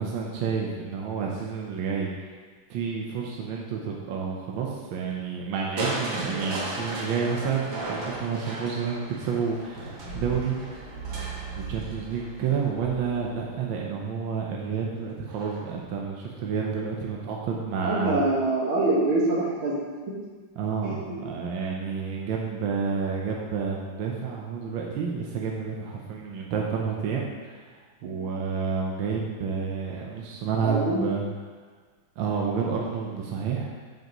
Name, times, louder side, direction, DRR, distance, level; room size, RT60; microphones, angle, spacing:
voice 1, 0.0-2.1 2.7-10.6 11.5-18.2 20.6-27.7 28.0-31.2 32.2-33.8, right 6 dB, 75° right, -2 dB, 1.5 m, -30 dB
Crushing, 5.8-13.7 15.3-15.8 16.3-16.4, right 2 dB, 55° right, 1.7 m, -35 dB
voice 2, 17.8-20.1 20.8-21.2 28.0-28.1 30.6-31.0, right 2 dB, 90° right, -5 dB, 2.4 m, -25 dB
7.9 x 7.7 x 3.0 m, 1.5 s
omnidirectional pair, 2.2 m